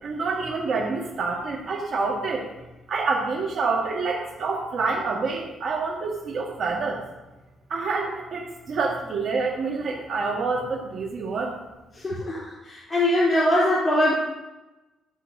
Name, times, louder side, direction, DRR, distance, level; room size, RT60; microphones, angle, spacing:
voice 1, 0.0-2.5 2.9-7.0 7.7-11.5, right 4 dB, 60° right, -3 dB, 1.7 m, -27 dB
voice 2, 11.9-14.1, left 1 dB, 20° left, -9 dB, 3.3 m, -22 dB
12.5 x 7.5 x 2.7 m, 1.0 s
cardioid pair, 90°, 0 cm